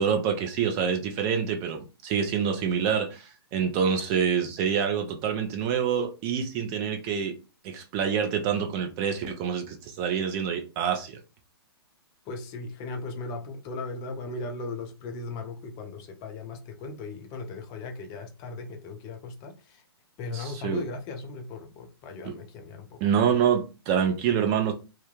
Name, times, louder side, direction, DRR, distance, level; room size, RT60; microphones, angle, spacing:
voice 1, 0.0-7.3 7.6-11.2 20.3-20.8 22.3-22.4 23.0-24.7, right 7 dB, 30° right, 0.5 m, -26 dB
voice 2, 12.3-19.9 20.2-23.0, left 3 dB, 25° left, 0.4 m, -37 dB
2.2 x 2.2 x 3.0 m
hypercardioid pair, 130°, 14 cm